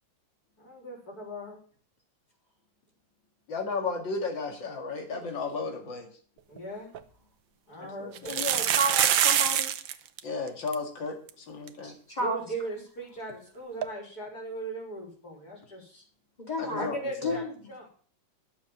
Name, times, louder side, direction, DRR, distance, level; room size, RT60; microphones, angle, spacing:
voice 1, 0.6-1.6 6.5-7.0 7.7-8.3 12.2-16.0 16.7-17.9, right 2 dB, 55° left, 0 dB, 4.5 m, -38 dB
voice 2, 3.5-6.1 7.8-8.4 10.2-11.2 11.5-11.9 16.6-17.0, left 4 dB, 85° left, 4 dB, 2.9 m, -34 dB
sound 1, 6.6-6.7 6.9-7.0 8.2-9.9 10.2-10.3 10.5-10.7 11.3-11.4 11.7-11.8 13.8-13.9, right 10 dB, 85° right, 1.6 m, -25 dB
voice 3, 8.2-9.7 11.8-12.4 16.5-16.9 17.2-17.4, equal, 20° left, -1 dB, 3.8 m, -31 dB
11.0 x 7.1 x 7.2 m, 0.43 s
omnidirectional pair, 2.0 m